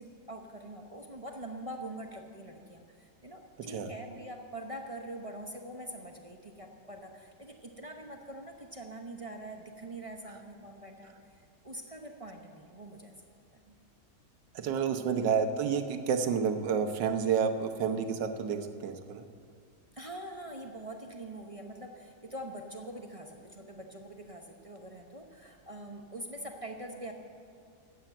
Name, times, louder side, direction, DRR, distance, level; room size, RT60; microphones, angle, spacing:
voice 1, 0.0-13.1 13.5-13.8 19.9-27.1, right 1 dB, 30° right, 3 dB, 0.6 m, -44 dB
voice 2, 3.6-3.9 14.5-19.2, right 6 dB, 85° right, 7 dB, 1.5 m, -30 dB
13.0 x 8.9 x 7.9 m, 2.2 s
omnidirectional pair, 1.9 m